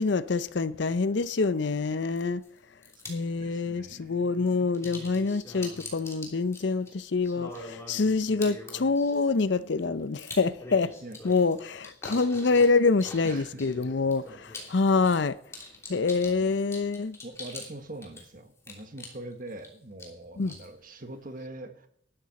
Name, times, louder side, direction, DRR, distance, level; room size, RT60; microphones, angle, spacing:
voice 1, 0.0-2.4 3.1-10.9 11.2-15.4 15.9-17.2 20.4-20.5, left 4 dB, 60° left, 0.6 m, -26 dB
sound 1, 1.3-1.4 2.2-2.5 2.8-3.2 4.5-17.7 18.0-19.7 20.0-20.7, left 2 dB, 15° left, 3.1 m, -44 dB
voice 2, 3.2-4.7 11.0-11.2 13.2-13.8 16.2-16.8 17.2-21.9, right 1 dB, 45° right, 1.5 m, -43 dB
12.5 x 12.0 x 4.2 m
head